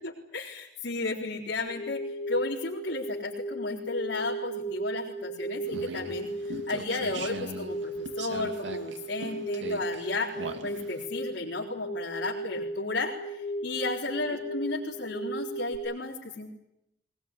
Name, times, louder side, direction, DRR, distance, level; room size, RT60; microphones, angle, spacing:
voice 1, 0.0-16.5, left 3 dB, 70° left, -4 dB, 4.0 m, -34 dB
sound 1, 1.7-15.8, right 1 dB, 85° left, 3.8 m, -36 dB
sound 2, 5.6-11.1, right 2 dB, 75° right, 2.5 m, -40 dB
22.0 x 20.5 x 9.9 m, 0.85 s
head